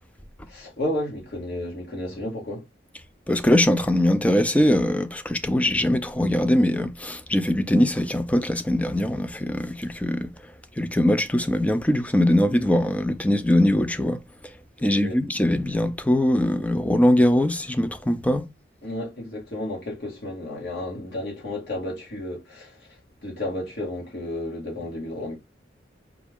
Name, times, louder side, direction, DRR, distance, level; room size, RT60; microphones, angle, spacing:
voice 1, 0.5-2.7 14.8-15.2 18.8-25.3, left 1 dB, 60° left, 1.8 m, -32 dB
voice 2, 3.3-10.3 10.8-14.2 14.8-18.5, left 1 dB, 10° left, 0.3 m, -21 dB
4.7 x 2.4 x 3.4 m
head